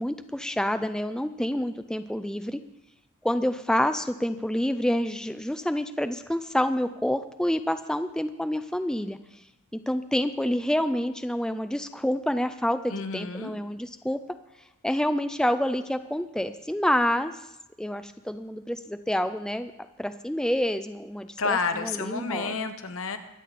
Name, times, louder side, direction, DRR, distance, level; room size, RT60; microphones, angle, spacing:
voice 1, 0.0-2.6 3.2-9.2 9.7-14.2 14.8-17.3 17.8-19.7 20.0-21.3 21.8-22.5, left 1 dB, 5° left, 9 dB, 0.4 m, -28 dB
voice 2, 12.9-13.6 21.4-23.2, left 4 dB, 65° left, 8 dB, 1.2 m, -30 dB
22.5 x 8.5 x 4.2 m, 0.91 s
head